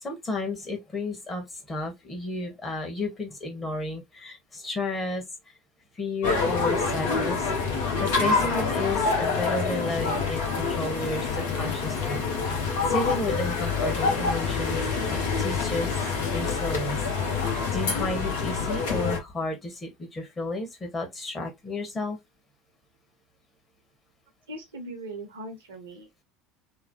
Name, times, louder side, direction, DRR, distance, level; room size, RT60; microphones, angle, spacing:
voice 1, 0.0-5.2 5.9-7.5 8.0-12.2 12.5-16.0 16.3-22.2, left 2 dB, 25° left, 1.3 m, -32 dB
sound 1, 6.2-19.2, left 4 dB, 65° left, 0.9 m, -26 dB
voice 2, 24.5-26.2, right 2 dB, 75° right, 0.7 m, -40 dB
3.1 x 2.1 x 2.8 m
figure-of-eight pair, 70°, 0 cm